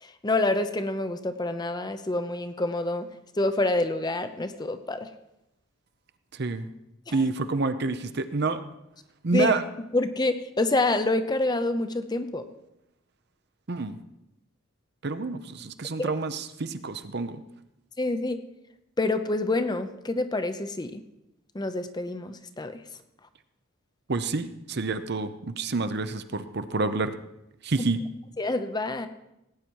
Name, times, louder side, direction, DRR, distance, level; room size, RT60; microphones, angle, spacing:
voice 1, 0.2-3.1 3.4-5.1 7.1-7.2 9.3-9.6 9.9-12.4 16.0-16.1 18.0-18.4 19.0-21.0 21.5-22.8 28.4-29.1, left 2 dB, 20° left, 9 dB, 0.6 m, -27 dB
voice 2, 7.1-8.6 9.2-9.6 13.7-14.0 15.0-17.4 24.1-27.1 27.6-28.0, right 3 dB, 55° right, 10 dB, 0.7 m, -28 dB
17.5 x 8.7 x 4.7 m, 0.88 s
head